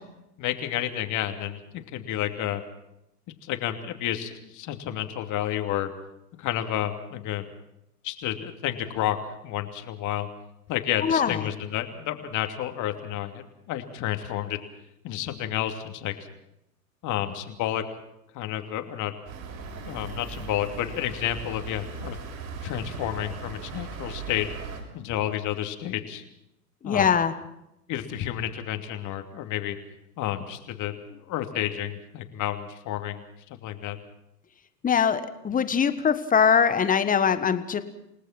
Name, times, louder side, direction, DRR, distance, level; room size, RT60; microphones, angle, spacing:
voice 1, 0.4-2.6 3.4-5.9 6.4-7.5 8.0-9.2 9.4-10.3 10.7-14.6 15.0-16.2 17.0-17.8 18.3-19.1 19.8-22.2 22.6-24.5 24.9-26.2 26.8-27.1 27.9-29.8 30.2-33.2 33.5-34.0, left 12 dB, 40° left, 7 dB, 2.8 m, -30 dB
voice 2, 11.0-11.4 26.8-27.3 34.8-37.8, left 7 dB, 15° left, 11 dB, 1.5 m, -22 dB
sound 1, 19.3-24.8, right 5 dB, 40° right, 6.9 m, -38 dB
29.0 x 18.5 x 6.1 m, 0.84 s
hypercardioid pair, 105°, 47 cm